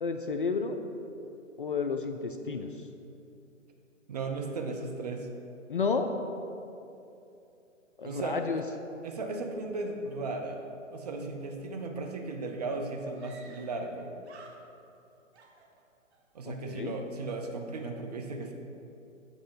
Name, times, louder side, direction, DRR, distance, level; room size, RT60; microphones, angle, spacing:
voice 1, 0.0-0.8 1.6-2.9 5.7-6.1 8.0-8.6 16.5-16.9, left 4 dB, 45° left, 6 dB, 0.4 m, -31 dB
voice 2, 4.1-5.3 8.0-8.4 9.0-10.6 10.9-14.1 16.3-18.5, right 3 dB, 30° right, 2 dB, 0.6 m, -36 dB
Screaming, 13.1-14.0 14.2-15.0 15.3-16.3, right 3 dB, 55° right, 1.0 m, -55 dB
8.0 x 4.2 x 5.7 m, 2.8 s
figure-of-eight pair, 135°, 39 cm